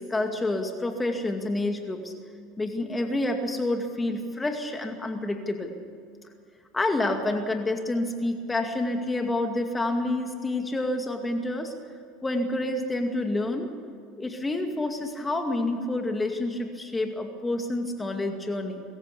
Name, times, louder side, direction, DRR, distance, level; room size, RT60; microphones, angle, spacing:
voice 1, 0.0-2.1 2.6-5.8 6.7-11.7 12.2-13.7 14.2-18.8, left 2 dB, 15° left, 5 dB, 2.3 m, -28 dB
24.0 x 14.5 x 8.4 m, 2.2 s
hypercardioid pair, 85°, 0 cm